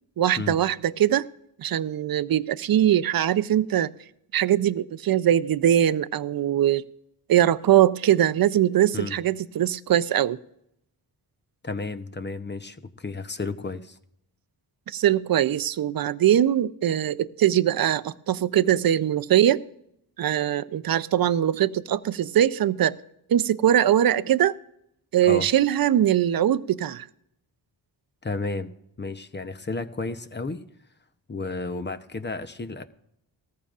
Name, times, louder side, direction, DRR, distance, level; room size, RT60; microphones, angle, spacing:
voice 1, 0.2-1.3 1.6-3.9 4.3-6.8 7.3-10.4 14.9-19.6 20.2-22.9 23.3-24.6 25.1-27.1, right 11 dB, 55° right, 0.6 m, -21 dB
voice 2, 11.6-14.0 25.2-25.5 28.2-28.7 29.0-30.6 31.3-32.8, left 3 dB, 25° left, 0.8 m, -32 dB
18.5 x 14.0 x 2.5 m
cardioid pair, 65°, 42 cm